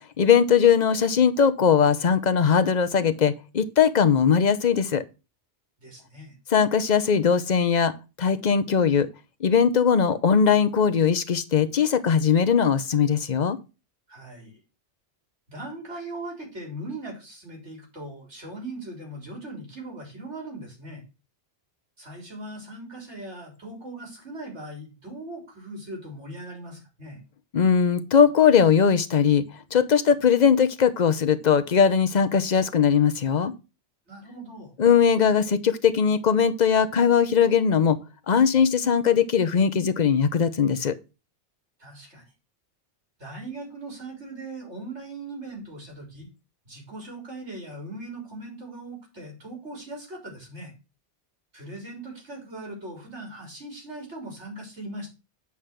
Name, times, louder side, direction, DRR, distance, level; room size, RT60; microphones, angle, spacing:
voice 1, 0.2-5.0 6.5-7.9 8.2-9.1 9.4-13.6 27.5-29.4 29.7-33.5 34.8-38.0 38.3-40.9, left 7 dB, 45° left, 0.8 m, -20 dB
voice 2, 5.8-6.4 14.1-14.6 15.5-21.0 22.0-27.2 34.1-34.7 41.8-42.2 43.2-46.3 46.7-50.7 51.5-55.1, right 2 dB, 80° right, 4.0 m, -39 dB
8.4 x 5.0 x 5.7 m
omnidirectional pair, 1.2 m